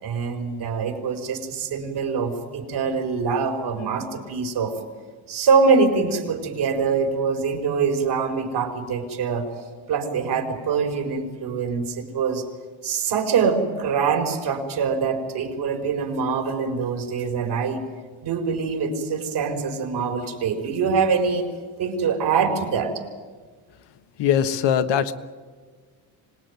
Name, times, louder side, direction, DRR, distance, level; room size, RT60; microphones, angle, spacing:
voice 1, 0.0-4.7 5.3-9.5 9.9-12.4 12.8-17.8 18.2-21.5 21.8-23.0, right 5 dB, 65° right, 4 dB, 4.7 m, -24 dB
voice 2, 24.2-25.1, left 8 dB, 75° left, 9 dB, 1.6 m, -21 dB
25.5 x 19.0 x 9.5 m, 1.5 s
cardioid pair, 100°, 43 cm